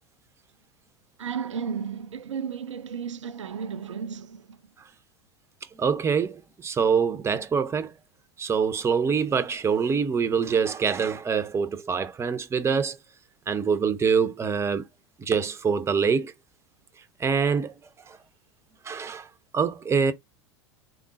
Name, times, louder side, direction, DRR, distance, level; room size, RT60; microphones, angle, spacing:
voice 1, 1.2-4.6, right 7 dB, 80° right, 0.4 m, -33 dB
voice 2, 5.8-7.9 8.4-13.0 13.5-14.8 15.2-16.3 17.2-17.7 18.1-18.2 18.8-19.3 19.5-20.1, right 6 dB, 15° right, 0.6 m, -25 dB
3.7 x 3.6 x 2.5 m
figure-of-eight pair, 85°, 15 cm